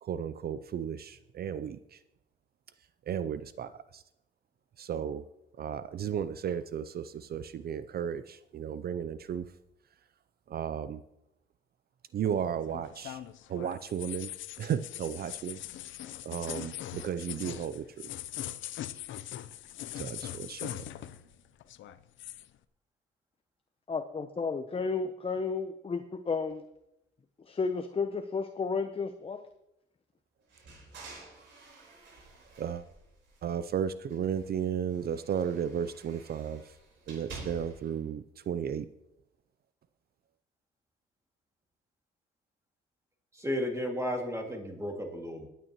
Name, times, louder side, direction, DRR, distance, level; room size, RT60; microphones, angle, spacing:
voice 1, 0.0-1.8 3.1-4.0 4.8-5.2 5.6-9.5 10.5-11.0 12.1-13.2 13.5-14.3 14.6-15.6 16.2-17.8 20.0-20.8 32.6-32.8 33.4-36.6 37.1-38.9, right 8 dB, 50° right, 13 dB, 0.5 m, -34 dB
sound 1, 12.2-21.3 21.6-22.5, left 12 dB, 75° left, 0.6 m, -41 dB
voice 2, 23.9-26.6 27.5-29.4, left 4 dB, 30° left, 8 dB, 0.7 m, -32 dB
sound 2, 30.5-33.7 34.0-38.0, right 3 dB, 70° right, 4.1 m, -50 dB
voice 3, 43.4-45.5, equal, 15° right, 1 dB, 2.2 m, -33 dB
21.5 x 9.3 x 3.0 m, 0.86 s
cardioid pair, 90°, 20 cm